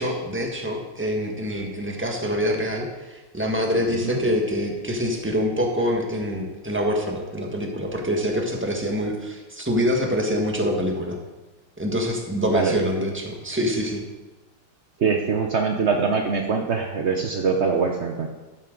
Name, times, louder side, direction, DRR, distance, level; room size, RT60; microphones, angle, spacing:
voice 1, 0.0-11.2 11.8-14.0, equal, 5° right, 1 dB, 1.2 m, -25 dB
voice 2, 15.0-18.3, right 5 dB, 70° right, 3 dB, 0.6 m, -23 dB
12.5 x 10.0 x 3.9 m, 1.1 s
omnidirectional pair, 2.3 m